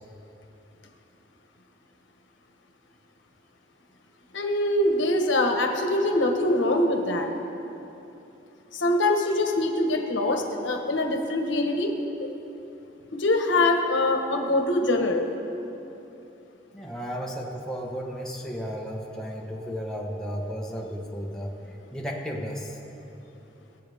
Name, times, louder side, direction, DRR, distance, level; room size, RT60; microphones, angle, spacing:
voice 1, 4.3-7.3 8.7-11.9 13.1-15.2, left 2 dB, 85° left, 3 dB, 1.2 m, -23 dB
voice 2, 16.7-21.5 21.9-22.8, equal, 5° left, -3 dB, 1.1 m, -34 dB
23.5 x 8.0 x 3.5 m, 3.0 s
head